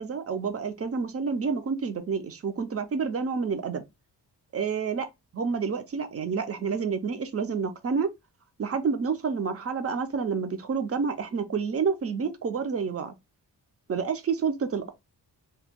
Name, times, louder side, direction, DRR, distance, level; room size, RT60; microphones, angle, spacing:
voice 1, 0.0-3.8 4.5-5.1 5.3-8.1 8.6-13.1 13.9-14.9, right 5 dB, 35° right, 0.5 m, -29 dB
2.9 x 2.2 x 3.4 m
wide cardioid pair, 130°, 41 cm